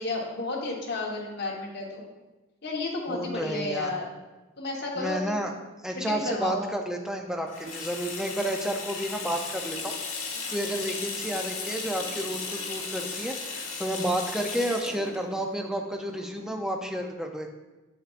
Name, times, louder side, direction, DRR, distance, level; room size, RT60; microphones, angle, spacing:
voice 1, 0.0-2.0 2.6-4.1 4.6-5.4 5.9-6.6 10.3-10.5, left 2 dB, 50° left, -3 dB, 1.2 m, -32 dB
voice 2, 3.1-3.9 5.0-5.5 5.8-17.5, right 1 dB, 5° right, 3 dB, 0.4 m, -31 dB
Water tap faucet / Sink (filling or washing), 7.5-16.8, left 4 dB, 70° left, 1.6 m, -36 dB
8.1 x 7.7 x 2.5 m, 1.1 s
head